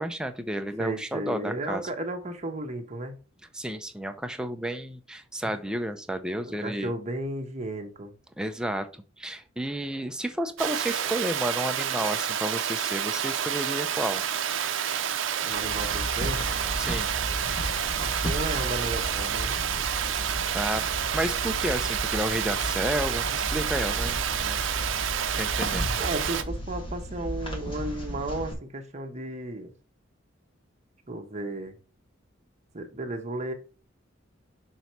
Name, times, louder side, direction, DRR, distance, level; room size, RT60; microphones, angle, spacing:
voice 1, 0.0-1.8 3.5-6.9 8.4-14.2 16.8-17.1 20.5-20.8 21.1-24.6 25.3-25.9, right 1 dB, 5° right, 0.6 m, -31 dB
voice 2, 0.8-3.1 5.4-5.5 6.4-8.1 15.4-16.5 17.9-19.6 26.0-29.7 31.1-31.8 32.7-33.5, right 1 dB, 35° right, 1.2 m, -34 dB
Water, 10.6-26.4, right 9 dB, 70° right, 0.6 m, -29 dB
sound 1, 15.6-28.5, equal, 25° left, 1.7 m, -34 dB
6.2 x 4.1 x 4.5 m
head